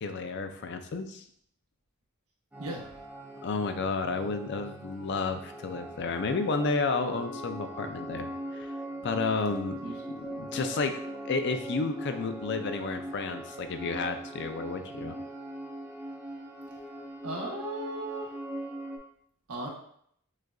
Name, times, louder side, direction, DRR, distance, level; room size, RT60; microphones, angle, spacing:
voice 1, 0.0-1.2 3.4-8.7 9.0-9.8 10.1-11.0 11.2-15.2, left 4 dB, 55° left, 7 dB, 0.4 m, -31 dB
sound 1, 2.5-19.0, right 1 dB, 5° right, 0.7 m, -41 dB
voice 2, 17.2-18.3 19.5-19.7, right 1 dB, 85° right, -1 dB, 1.0 m, -35 dB
6.2 x 2.5 x 2.3 m, 0.66 s
head